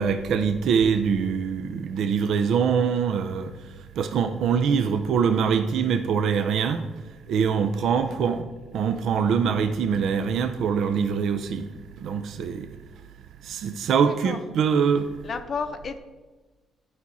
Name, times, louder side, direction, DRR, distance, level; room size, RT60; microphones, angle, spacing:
voice 1, 0.0-3.5 4.0-6.8 7.3-8.4 8.7-11.7 12.0-12.7 13.4-15.1, right 6 dB, 75° right, 0.5 m, -23 dB
voice 2, 8.0-8.4 14.0-14.4 15.2-16.0, left 5 dB, 50° left, 0.6 m, -33 dB
10.5 x 4.8 x 4.2 m
cardioid pair, 90°, 0 cm